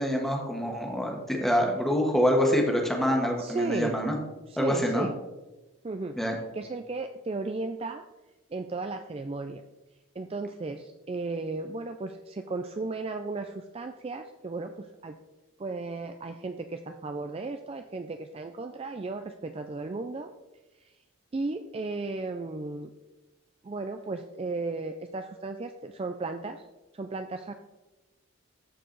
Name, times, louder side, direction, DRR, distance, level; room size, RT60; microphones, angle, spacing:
voice 1, 0.0-4.2 4.6-5.1 6.1-6.4, equal, ahead, 1 dB, 1.3 m, -26 dB
voice 2, 3.4-4.0 4.5-5.1 5.8-6.2 6.5-8.0 8.5-9.6 10.2-15.2 15.6-20.3 20.8-20.9 21.3-22.9 23.6-26.6 26.9-27.5, right 3 dB, 25° right, 7 dB, 0.3 m, -35 dB
14.0 x 4.7 x 3.9 m, 1.1 s
head